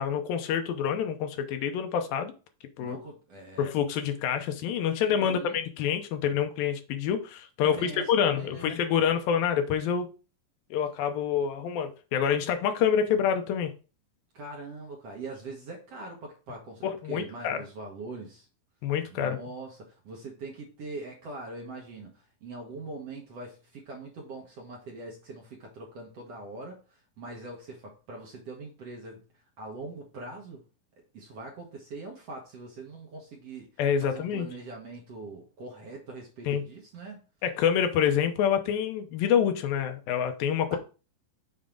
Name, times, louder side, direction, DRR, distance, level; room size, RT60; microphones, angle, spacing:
voice 1, 0.0-2.3 2.8-3.0 3.6-10.1 10.7-13.7 16.8-17.6 18.8-19.4 33.8-34.5 36.5-36.6 37.4-40.8, left 8 dB, 80° left, 2.6 m, -27 dB
voice 2, 2.8-3.7 5.1-5.6 7.6-8.7 14.3-18.5 19.1-29.2 29.6-30.6 31.1-33.7 34.0-37.2 40.7-40.8, right 3 dB, 55° right, 1.9 m, -42 dB
7.0 x 4.2 x 3.8 m
omnidirectional pair, 4.1 m